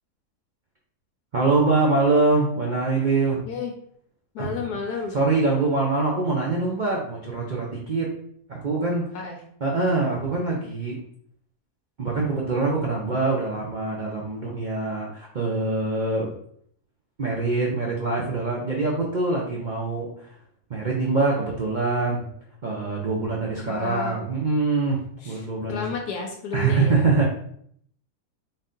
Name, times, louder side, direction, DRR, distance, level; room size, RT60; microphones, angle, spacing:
voice 1, 1.3-3.4 4.4-4.5 5.1-8.1 8.5-9.0 9.6-11.0 12.0-16.3 17.2-20.3 20.7-22.2 22.6-25.9 26.5-27.3, right 3 dB, 85° right, -3 dB, 0.4 m, -24 dB
voice 2, 4.3-5.2 9.1-9.4 23.7-24.3 25.2-27.1, left 5 dB, 75° left, 2 dB, 1.1 m, -32 dB
3.9 x 2.6 x 3.7 m, 0.66 s
omnidirectional pair, 1.8 m